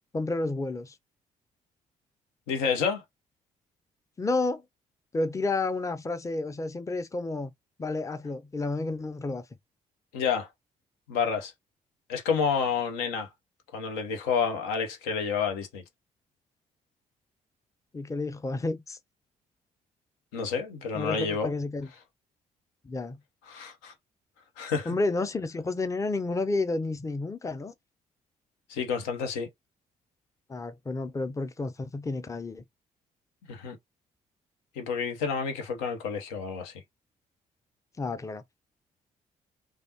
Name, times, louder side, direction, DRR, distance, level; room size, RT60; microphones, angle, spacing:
voice 1, 0.1-0.9 4.2-4.6 5.1-7.5 7.8-9.4 17.9-19.0 20.9-21.9 22.8-23.2 24.9-27.7 30.5-32.6 38.0-38.4, left 3 dB, 15° left, 0.6 m, -30 dB
voice 2, 2.5-3.0 10.1-10.5 11.1-11.5 12.1-13.3 13.7-15.8 20.3-21.5 23.5-23.9 24.6-24.9 28.7-29.5 33.5-33.8 34.8-36.7, left 6 dB, 75° left, 0.7 m, -29 dB
3.3 x 2.4 x 2.7 m
hypercardioid pair, 40°, 18 cm